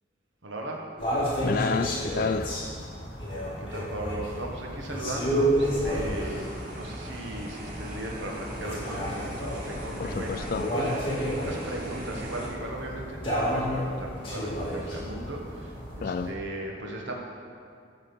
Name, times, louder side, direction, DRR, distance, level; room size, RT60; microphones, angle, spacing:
voice 1, 0.4-0.8 3.6-10.9 11.2-17.1, right 1 dB, 80° right, 0 dB, 1.1 m, -37 dB
sound 1, 1.0-16.3, equal, 30° left, 2.4 m, -31 dB
voice 2, 1.4-2.6 10.0-10.7 16.0-16.3, left 5 dB, 50° left, 8 dB, 0.3 m, -29 dB
sound 2, 5.6-12.5, equal, 45° right, 1.6 m, -40 dB
10.5 x 6.3 x 5.2 m, 2.3 s
head